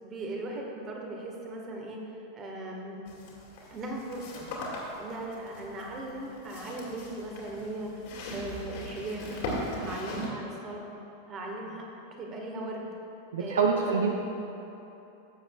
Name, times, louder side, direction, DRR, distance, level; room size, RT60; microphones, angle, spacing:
voice 1, 0.0-2.0 2.3-3.0 3.7-4.5 5.0-8.0 8.3-10.9 11.3-11.8 12.2-12.9 13.4-14.1, right 1 dB, 30° right, 0 dB, 1.5 m, -38 dB
sound 1, 3.0-10.3, left 1 dB, 50° left, 2.0 m, -39 dB
voice 2, 13.3-14.1, right 5 dB, 65° right, 1 dB, 0.6 m, -25 dB
16.0 x 7.2 x 2.4 m, 3.0 s
figure-of-eight pair, 90°, 0 cm